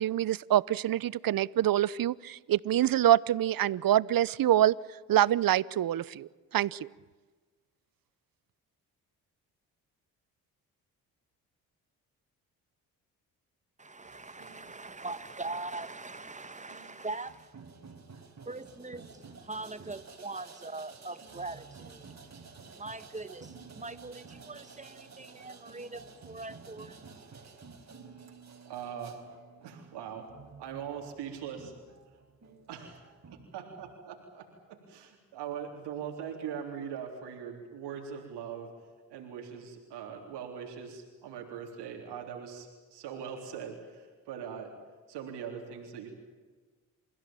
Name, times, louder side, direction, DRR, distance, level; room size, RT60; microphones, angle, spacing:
voice 1, 0.0-4.8 5.1-6.3 6.5-6.8, right 12 dB, 55° right, 22 dB, 0.9 m, -25 dB
voice 2, 13.8-17.5 18.4-27.6, right 3 dB, 15° right, 14 dB, 1.6 m, -42 dB
sound 1, 14.0-33.9, right 5 dB, 40° right, 4.8 m, -52 dB
voice 3, 28.7-29.2 29.6-30.3 30.6-31.8 32.7-33.0 33.5-38.7 39.1-44.8 45.1-46.1, right 8 dB, 75° right, 2 dB, 3.7 m, -41 dB
29.0 x 16.0 x 8.9 m, 1.4 s
hypercardioid pair, 50°, 41 cm